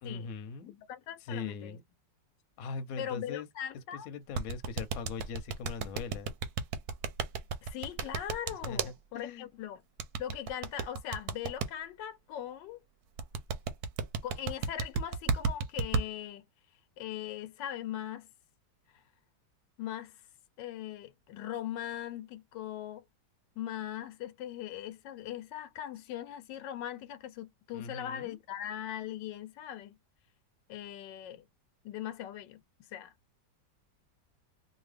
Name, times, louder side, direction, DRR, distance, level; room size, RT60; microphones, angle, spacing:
voice 1, 0.0-0.7 1.2-1.8 2.6-3.5 4.0-6.3 8.6-9.5 27.7-28.4, left 4 dB, 65° left, 1.0 m, -41 dB
voice 2, 0.6-1.8 3.0-4.1 7.6-9.8 10.2-12.8 14.2-16.4 17.0-18.3 18.9-19.0 19.8-20.2 20.6-23.0 23.6-29.9 30.7-31.5 31.8-33.1, left 11 dB, 85° left, 1.2 m, -40 dB
sound 1, 4.3-8.9 10.0-11.7 13.2-16.0, right 5 dB, 70° right, 1.0 m, -32 dB
2.7 x 2.5 x 3.2 m
omnidirectional pair, 1.9 m